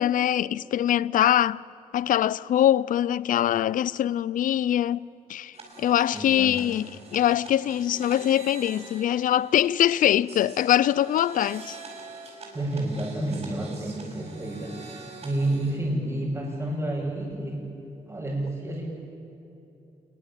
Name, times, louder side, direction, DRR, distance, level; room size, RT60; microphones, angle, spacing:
voice 1, 0.0-1.6 1.9-11.8, left 11 dB, 80° left, 0.6 m, -23 dB
sound 1, 5.5-15.8, right 4 dB, 50° right, 5.9 m, -45 dB
voice 2, 6.1-6.5 12.5-17.7 18.1-18.8, right 1 dB, 20° right, 7.5 m, -30 dB
27.0 x 22.0 x 8.9 m
cardioid pair, 115°, 14 cm